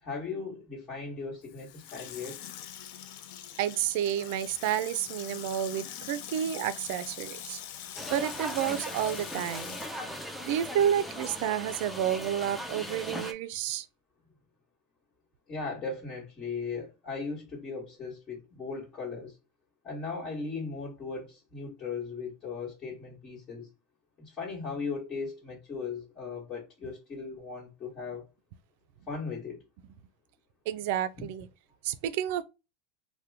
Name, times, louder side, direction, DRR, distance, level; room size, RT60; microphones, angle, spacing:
voice 1, 0.0-2.4 15.5-19.4 19.8-23.7 24.2-28.2 29.1-29.6, left 4 dB, 35° left, 1.3 m, -37 dB
Water tap faucet / Sink (filling or washing), 1.4-11.1 11.4-11.5, left 10 dB, 65° left, 0.4 m, -44 dB
voice 2, 3.6-7.6 8.1-9.8 10.4-13.9 30.7-31.5 31.8-32.4, right 10 dB, 70° right, 0.3 m, -30 dB
sound 1, 8.0-13.3, equal, 5° left, 0.5 m, -39 dB
2.8 x 2.1 x 3.4 m
supercardioid pair, 125°, 0 cm